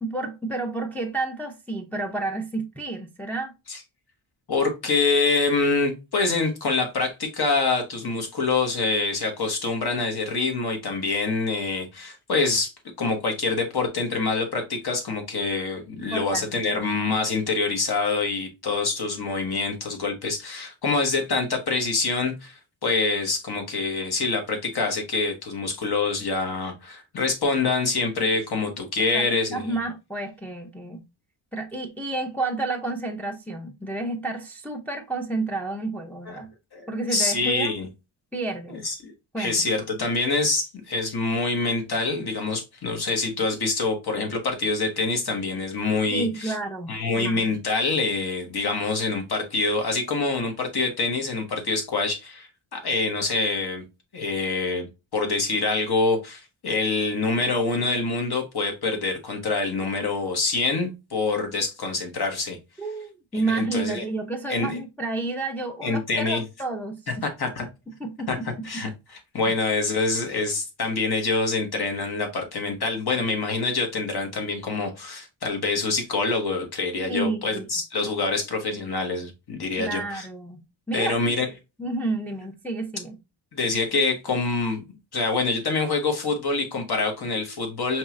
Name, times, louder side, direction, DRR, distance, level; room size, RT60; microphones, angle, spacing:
voice 1, 0.0-3.5 16.1-16.6 28.2-28.3 29.0-31.0 31.5-36.5 36.9-37.7 38.3-38.8 39.3-39.7 46.0-47.6 62.8-67.3 68.0-68.9 69.5-69.6 77.0-77.7 79.8-80.6 80.9-81.4 81.8-83.2, right 2 dB, 5° left, 0.6 m, -30 dB
voice 2, 4.5-12.7 13.0-29.6 36.3-36.4 36.7-37.9 38.7-39.1 39.4-46.5 46.9-53.8 54.1-62.6 63.4-64.0 64.5-64.8 65.8-66.4 67.2-67.6 68.3-68.4 68.6-80.3 80.9-81.5 83.5-84.8 85.1-88.0, left 3 dB, 55° left, 1.5 m, -26 dB
5.2 x 3.1 x 2.5 m
wide cardioid pair, 140°, 46 cm